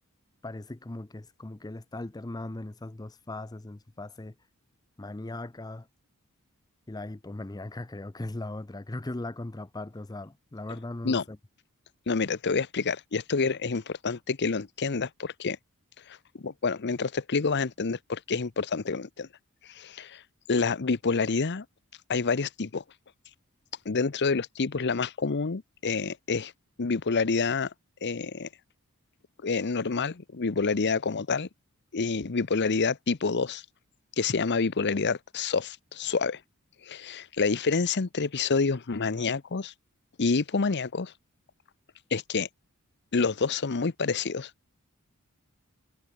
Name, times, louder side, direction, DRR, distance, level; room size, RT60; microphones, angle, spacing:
voice 1, 0.4-4.3 5.0-5.9 6.9-11.4, left 2 dB, 15° left, 0.6 m, -38 dB
voice 2, 12.1-15.6 16.1-19.3 19.7-20.2 20.5-21.6 22.1-22.8 23.8-26.5 26.8-27.7 28.0-28.5 29.4-31.5 31.9-33.6 34.2-36.4 36.8-39.7 40.2-41.1 42.1-42.5 43.1-44.5, left 4 dB, 50° left, 0.8 m, -28 dB
head